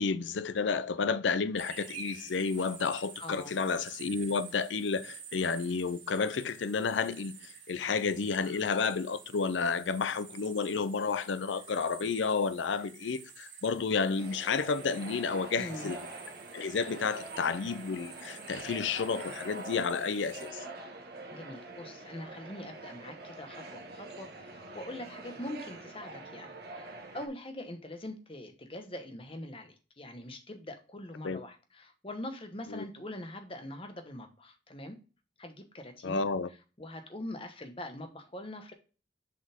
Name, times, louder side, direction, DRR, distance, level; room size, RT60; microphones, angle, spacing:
voice 1, 0.0-16.0 16.5-20.6 31.2-31.4 32.7-32.8 36.0-36.5, left 5 dB, 80° left, 0.5 m, -31 dB
sound 1, 1.6-20.5, right 6 dB, 85° right, 1.9 m, -50 dB
voice 2, 3.2-3.6 15.6-15.9 21.3-35.0 35.4-36.2 36.8-38.7, left 1 dB, 30° left, 1.2 m, -43 dB
sound 2, 14.2-27.3, right 2 dB, 55° right, 1.5 m, -45 dB
6.8 x 5.4 x 3.5 m
head